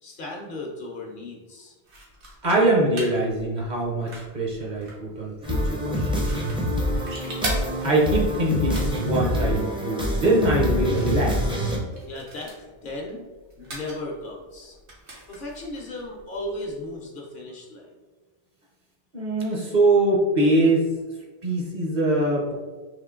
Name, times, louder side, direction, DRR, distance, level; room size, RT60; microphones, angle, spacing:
voice 1, 0.0-1.7 12.1-13.2 13.6-14.8 15.3-17.9, left 1 dB, 55° left, -1 dB, 0.8 m, -36 dB
sound 1, 1.8-17.0, right 1 dB, 80° right, 1.4 m, -41 dB
voice 2, 2.4-6.9 7.8-11.4 19.1-20.9 21.4-22.5, right 2 dB, 45° right, -2 dB, 0.8 m, -23 dB
sound 2, 5.4-11.8, equal, 5° right, 0.5 m, -26 dB
3.6 x 3.0 x 3.6 m, 1.3 s
omnidirectional pair, 1.1 m